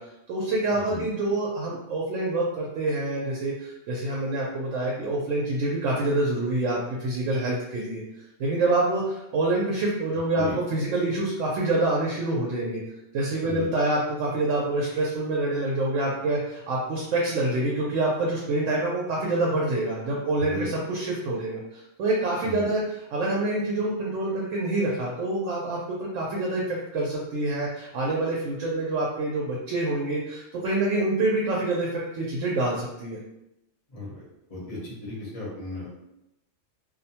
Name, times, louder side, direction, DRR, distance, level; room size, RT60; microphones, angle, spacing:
voice 1, 0.0-12.8 13.1-33.2, right 2 dB, 90° right, -3 dB, 0.9 m, -26 dB
voice 2, 0.7-1.0 10.3-10.6 13.4-13.7 20.4-20.7 22.4-22.7 33.9-34.2 34.5-35.9, left 2 dB, 35° left, -5 dB, 0.8 m, -35 dB
2.5 x 2.1 x 2.7 m, 0.87 s
omnidirectional pair, 1.3 m